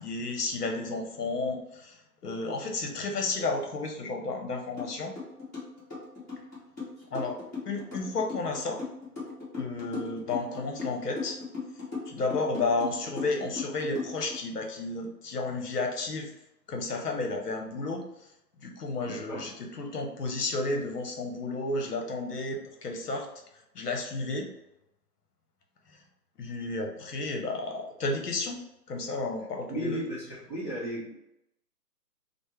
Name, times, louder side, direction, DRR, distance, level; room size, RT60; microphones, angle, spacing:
voice 1, 0.0-5.1 7.1-7.4 7.7-8.8 9.6-11.4 12.1-16.3 16.7-18.0 18.6-23.3 23.7-24.5 25.9-26.0 26.4-28.6 28.9-30.0, left 3 dB, 70° left, 3 dB, 0.8 m, -32 dB
sound 1, 4.8-4.9 5.2-14.4, left 4 dB, 10° left, 1.0 m, -37 dB
voice 2, 19.0-19.5 29.7-31.1, right 1 dB, 15° right, -13 dB, 0.7 m, -35 dB
3.4 x 2.1 x 3.1 m, 0.84 s
hypercardioid pair, 170°, 49 cm